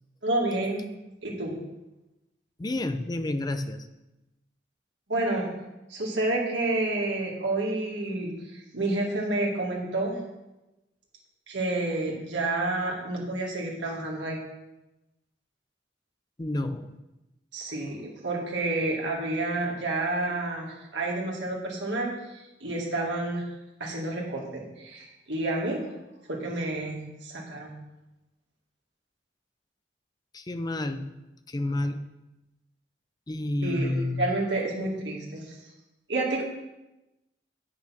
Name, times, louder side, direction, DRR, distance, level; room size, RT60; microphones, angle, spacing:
voice 1, 0.2-0.9 1.2-1.6 5.1-5.5 5.9-10.2 11.5-14.4 17.5-22.1 22.6-23.4 23.8-25.8 26.3-27.7 33.6-33.9 34.2-35.6 36.1-36.4, right 2 dB, 85° right, -2 dB, 2.2 m, -29 dB
voice 2, 2.6-3.9 16.4-17.0 30.3-31.1 31.5-32.0 33.3-34.3, left 1 dB, 20° left, 9 dB, 0.5 m, -30 dB
8.3 x 5.9 x 5.9 m, 0.99 s
head